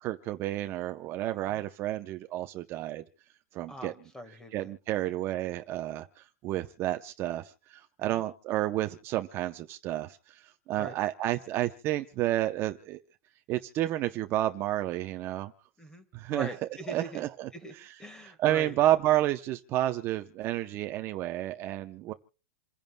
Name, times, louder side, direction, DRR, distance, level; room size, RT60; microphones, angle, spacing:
voice 1, 0.0-3.0 3.5-3.9 4.5-13.0 13.5-15.5 16.1-16.5 16.9-17.9 18.2-22.1, right 14 dB, 30° right, 7 dB, 0.6 m, -30 dB
voice 2, 3.7-4.7 8.0-8.2 10.7-11.0 15.8-17.2 17.5-17.7 18.0-18.8, equal, 5° left, 11 dB, 1.5 m, -43 dB
28.0 x 10.5 x 2.2 m, 0.36 s
supercardioid pair, 160°, 8 cm